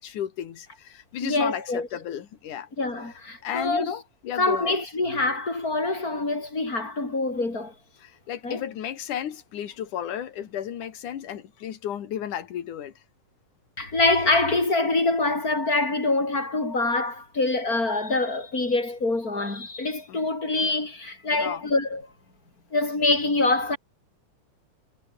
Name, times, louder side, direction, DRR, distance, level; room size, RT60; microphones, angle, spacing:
voice 1, 0.0-2.7 3.4-4.8 8.0-12.9 20.1-20.3 21.3-21.7, left 10 dB, 80° left, 3.4 m, -33 dB
voice 2, 1.2-1.9 2.8-3.9 4.4-7.7 8.4-8.6 13.8-22.0 22.7-23.8, left 2 dB, 25° left, 5.9 m, -25 dB
omnidirectional pair, 3.6 m